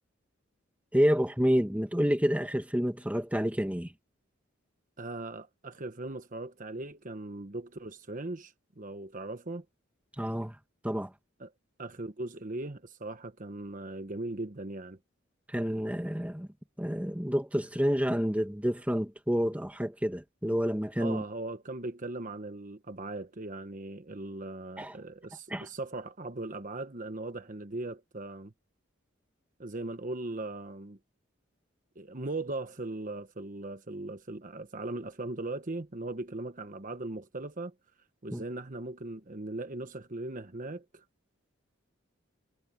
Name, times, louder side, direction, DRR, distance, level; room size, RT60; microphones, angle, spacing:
voice 1, 0.9-3.9 10.2-10.5 10.8-11.1 15.5-16.5 16.8-21.2 24.8-24.9 25.5-25.7 38.3-38.4, equal, 5° right, 1.6 m, -29 dB
voice 2, 5.0-9.6 11.4-11.5 11.8-15.0 21.0-28.5 29.6-31.0 31.9-37.7 38.2-41.0, right 2 dB, 40° right, 1.2 m, -39 dB
head